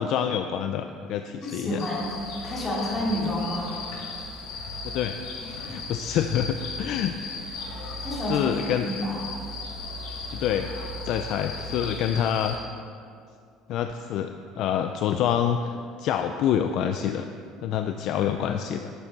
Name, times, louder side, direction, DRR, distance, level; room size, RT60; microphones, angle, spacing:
voice 1, 0.0-1.8 4.8-7.2 8.3-8.9 10.3-10.7 11.0-12.6 13.7-17.3 17.6-18.9, left 9 dB, 50° left, 7 dB, 0.3 m, -27 dB
voice 2, 1.4-2.1 2.4-3.7 8.0-8.5 8.8-9.1 18.2-18.3, left 1 dB, 20° left, -6 dB, 2.5 m, -29 dB
sound 1, 1.8-12.6, left 3 dB, 70° left, 1.5 m, -36 dB
11.5 x 7.3 x 4.0 m, 2.3 s
cardioid pair, 180°, 0 cm